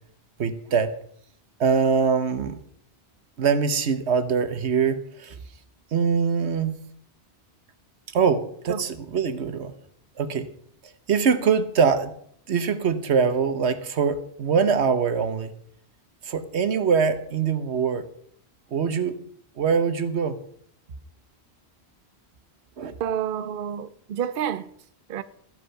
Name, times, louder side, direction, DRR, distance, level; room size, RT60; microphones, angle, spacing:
voice 1, 0.4-0.9 1.6-2.6 3.4-5.4 5.9-6.8 8.1-9.7 10.2-10.5 10.8-12.1 12.5-15.5 16.2-18.1 18.7-19.2 19.6-20.4 22.8-22.9, right 6 dB, 85° right, 1.3 m, -23 dB
voice 2, 23.0-24.7 25.1-25.2, right 9 dB, 60° right, 0.7 m, -29 dB
14.0 x 8.3 x 5.7 m
omnidirectional pair, 1.1 m